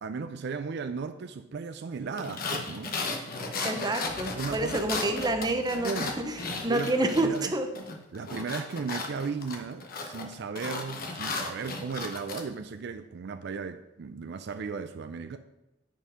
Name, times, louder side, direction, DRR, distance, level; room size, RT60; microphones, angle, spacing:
voice 1, 0.0-2.9 4.3-4.8 5.8-6.1 6.7-7.5 8.1-15.4, right 5 dB, 60° right, 0.4 m, -36 dB
sound 1, 2.2-7.5 7.7-12.4, left 3 dB, 50° left, 1.0 m, -35 dB
voice 2, 3.6-7.7, right 2 dB, 20° right, 0.7 m, -28 dB
Boom, 4.0-8.3, left 1 dB, 15° left, 1.6 m, -52 dB
9.3 x 4.5 x 5.0 m
head